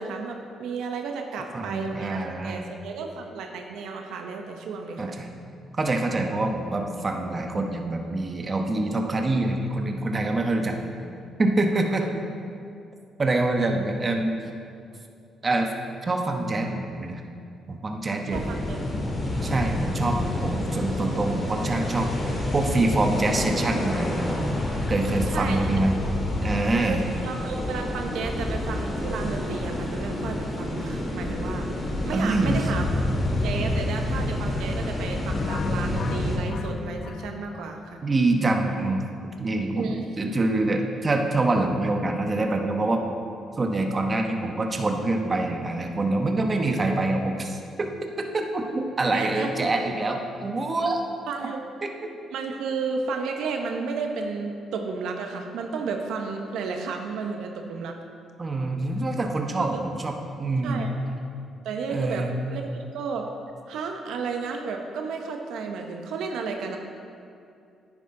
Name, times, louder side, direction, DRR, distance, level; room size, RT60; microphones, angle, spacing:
voice 1, 0.0-5.2 18.3-18.9 25.3-25.7 26.9-31.7 32.0-32.8 33.4-38.0 39.8-40.1 49.1-49.5 49.8-49.9 51.3-51.7 52.3-58.0 59.6-59.8 60.6-60.9 61.6-63.3 63.7-66.8, right 4 dB, 80° right, 3 dB, 0.8 m, -32 dB
voice 2, 1.5-2.7 5.0-5.3 5.7-10.9 11.4-12.1 13.2-14.4 15.4-15.7 16.0-17.2 17.7-18.7 19.4-22.1 22.5-24.4 24.9-25.9 26.4-27.0 32.1-32.7 38.0-39.1 39.4-43.0 43.6-51.2 51.8-51.9 58.4-60.9 61.9-62.3, right 2 dB, 30° right, 3 dB, 1.0 m, -25 dB
sound 1, 18.3-36.4, left 1 dB, 30° left, 2.2 m, -28 dB
sound 2, 35.3-38.2, left 5 dB, 55° left, 0.4 m, -35 dB
9.8 x 9.8 x 3.8 m, 2.5 s
cardioid pair, 90°, 0 cm